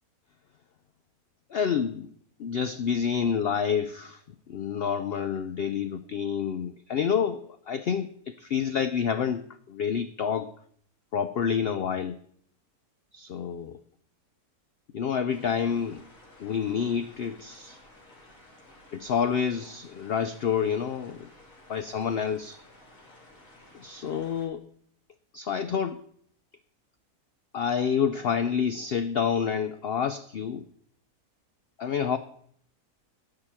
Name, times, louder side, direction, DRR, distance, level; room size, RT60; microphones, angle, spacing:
voice 1, 1.5-2.1 2.4-4.2 4.5-9.4 9.7-10.5 11.1-12.2 13.1-13.8 14.9-16.0 16.4-17.8 18.9-21.3 21.7-22.6 23.8-24.6 25.3-26.0 27.5-30.6 31.8-32.2, left 7 dB, 80° left, 11 dB, 0.5 m, -28 dB
sound 1, 15.3-24.5, left 1 dB, 60° left, 2.9 m, -54 dB
12.5 x 5.0 x 7.4 m, 0.63 s
omnidirectional pair, 1.6 m